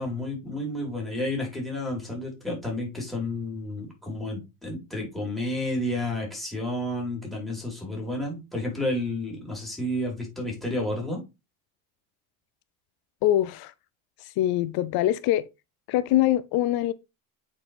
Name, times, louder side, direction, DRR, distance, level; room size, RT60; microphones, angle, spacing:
voice 1, 0.0-11.2, left 1 dB, ahead, 4.6 m, -31 dB
voice 2, 13.2-13.7 14.2-15.4 15.9-16.9, left 13 dB, 55° left, 0.6 m, -23 dB
8.3 x 5.1 x 3.5 m
supercardioid pair, 100°, 44 cm